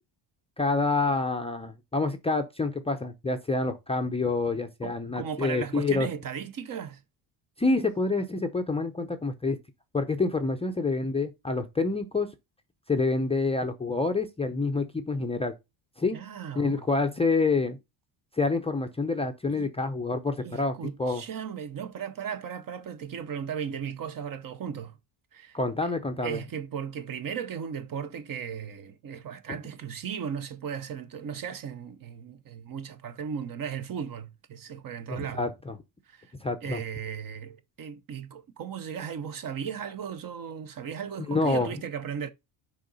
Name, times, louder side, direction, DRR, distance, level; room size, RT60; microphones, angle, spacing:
voice 1, 0.6-6.1 7.6-9.6 9.9-12.3 12.9-15.5 16.0-16.2 16.5-17.8 18.4-21.2 25.5-26.4 35.1-35.7 36.4-36.8 41.3-41.7, left 3 dB, 10° left, 0.5 m, -27 dB
voice 2, 4.8-7.0 16.1-16.9 19.5-19.7 20.4-24.9 25.3-25.9 26.2-35.5 36.1-36.3 36.6-42.3, right 7 dB, 40° right, 0.8 m, -36 dB
6.6 x 4.9 x 4.0 m
cardioid pair, 145°, 49 cm